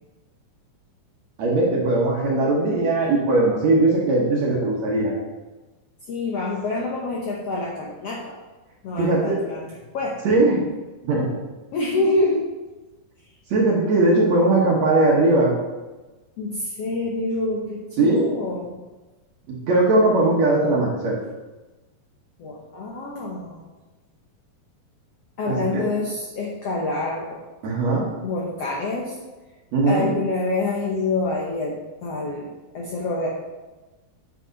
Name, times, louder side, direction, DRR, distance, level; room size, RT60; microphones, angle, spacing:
voice 1, 1.4-5.1 9.0-9.4 10.3-10.6 11.0-11.3 13.5-15.6 18.0-18.3 19.5-21.2 25.4-25.9 27.6-28.1 29.7-30.1, right 2 dB, 60° right, -3 dB, 1.9 m, -19 dB
voice 2, 6.1-8.4 8.8-10.2 11.7-12.5 16.4-18.7 22.4-23.6 25.4-27.4 28.2-29.2 29.8-32.5 32.7-33.3, left 2 dB, 80° left, -3 dB, 1.4 m, -27 dB
8.9 x 6.5 x 4.0 m, 1.2 s
omnidirectional pair, 4.4 m